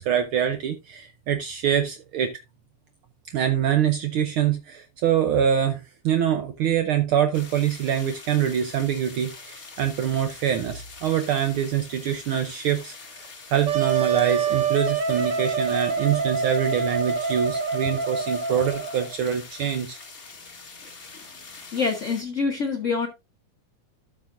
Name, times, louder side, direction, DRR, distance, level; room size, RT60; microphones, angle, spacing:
voice 1, 0.0-2.4 3.3-20.0, right 9 dB, 85° right, 1.1 m, -25 dB
sound 1, 7.3-22.2, left 4 dB, 40° left, 0.8 m, -44 dB
Wind instrument woodwind instrument, 13.7-19.2, right 5 dB, 60° right, 1.2 m, -26 dB
voice 2, 21.7-23.1, left 4 dB, 70° left, 0.7 m, -25 dB
13.0 x 6.0 x 2.6 m
omnidirectional pair, 3.3 m